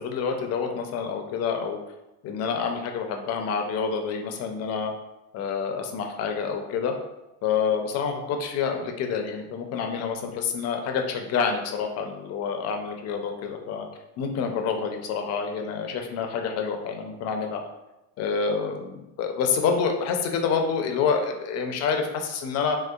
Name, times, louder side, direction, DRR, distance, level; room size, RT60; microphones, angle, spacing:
voice 1, 0.0-1.8 2.2-4.9 5.3-7.0 7.4-13.9 14.2-17.6 18.2-22.8, left 6 dB, 35° left, 4 dB, 0.4 m, -27 dB
3.1 x 2.7 x 2.3 m, 0.96 s
supercardioid pair, 115°, 46 cm